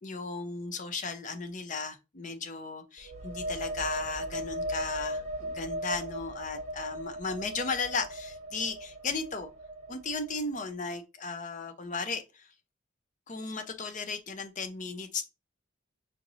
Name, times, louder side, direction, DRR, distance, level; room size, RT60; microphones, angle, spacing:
voice 1, 0.0-9.5 9.9-12.5 13.3-15.2, left 4 dB, 40° left, 0.5 m, -35 dB
sound 1, 3.0-10.6, equal, 35° right, 0.9 m, -38 dB
5.0 x 3.0 x 2.5 m
head